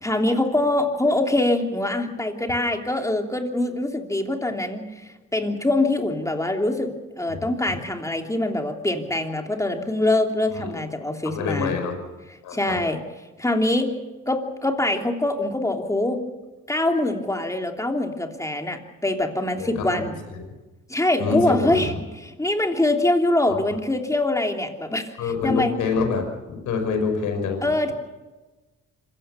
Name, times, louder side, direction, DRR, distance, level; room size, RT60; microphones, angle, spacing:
voice 1, 0.0-11.7 12.5-13.0 13.4-13.9 14.3-16.2 16.7-20.2 20.9-21.9 22.2-25.0 25.4-25.7 27.6-27.9, left 2 dB, 10° left, 4 dB, 3.2 m, -24 dB
voice 2, 11.2-11.9 12.4-12.8 19.5-20.0 20.3-20.4 21.2-22.0 23.4-23.6 25.2-27.6, left 5 dB, 85° left, 5 dB, 5.4 m, -26 dB
26.0 x 16.0 x 7.0 m, 1.2 s
cardioid pair, 90°, 30 cm